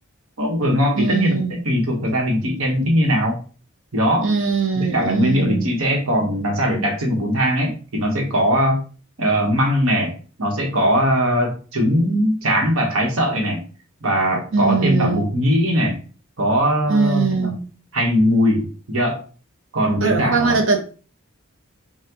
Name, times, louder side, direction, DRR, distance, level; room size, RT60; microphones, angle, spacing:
voice 1, 0.4-3.4 3.9-4.3 4.7-8.8 9.2-10.1 10.4-13.6 14.0-16.0 16.4-17.5 17.9-19.2 19.7-20.6, equal, 80° right, 1.3 m, -20 dB
voice 2, 1.0-1.5 4.2-5.6 14.5-15.2 16.9-17.6 20.0-20.8, right 4 dB, 65° right, 0.9 m, -20 dB
5.6 x 2.4 x 3.0 m
head